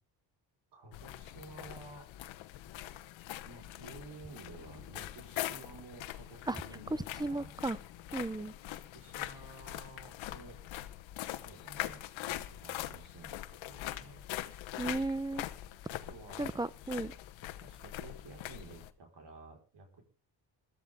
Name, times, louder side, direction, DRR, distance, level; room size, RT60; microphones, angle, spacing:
voice 1, 0.7-2.1 3.4-7.5 8.9-10.6 11.4-14.3 15.9-16.5 17.6-20.0, right 3 dB, 65° right, 2 dB, 4.7 m, -53 dB
sound 1, 0.9-18.9, left 14 dB, 90° left, 1.1 m, -43 dB
voice 2, 6.9-7.8 8.1-8.5 14.8-15.4 16.4-17.1, right 2 dB, 10° right, 19 dB, 0.6 m, -35 dB
21.5 x 13.5 x 3.6 m, 0.34 s
cardioid pair, 90°, 45 cm